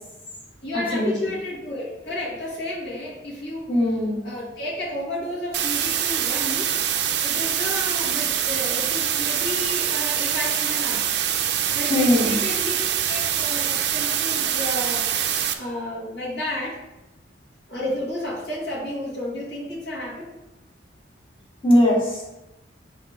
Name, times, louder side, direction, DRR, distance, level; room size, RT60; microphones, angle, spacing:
voice 1, 0.6-4.0 4.2-7.0 7.2-11.0 11.7-16.8 17.7-20.3, left 1 dB, 65° left, -7 dB, 2.3 m, -32 dB
voice 2, 3.7-4.2 11.9-12.4 21.6-22.2, left 1 dB, 25° left, -4 dB, 1.7 m, -19 dB
sound 1, 5.5-15.5, right 9 dB, 60° right, 0.5 m, -24 dB
7.2 x 3.4 x 4.9 m, 0.96 s
head